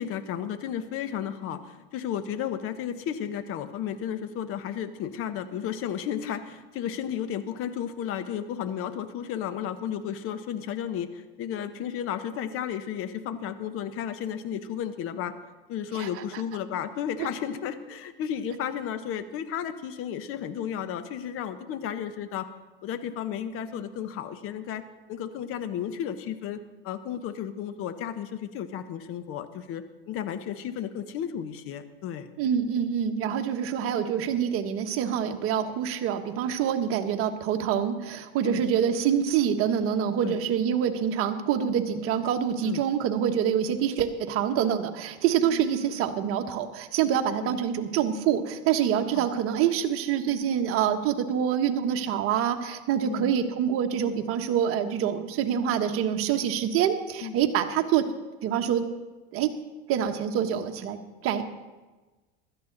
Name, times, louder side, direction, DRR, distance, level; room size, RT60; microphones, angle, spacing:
voice 1, 0.0-15.3 15.7-22.5 22.8-24.8 25.1-32.3 38.4-38.6 40.2-40.4 42.6-42.8 45.5-45.7 47.4-47.7 49.1-49.3 53.0-53.3 57.2-57.4, left 9 dB, 45° left, 11 dB, 1.1 m, -33 dB
voice 2, 32.4-58.0 58.4-58.8 59.3-59.5 59.9-61.4, right 9 dB, 45° right, 6 dB, 1.3 m, -26 dB
16.0 x 12.5 x 4.0 m, 1.2 s
supercardioid pair, 115°, 30 cm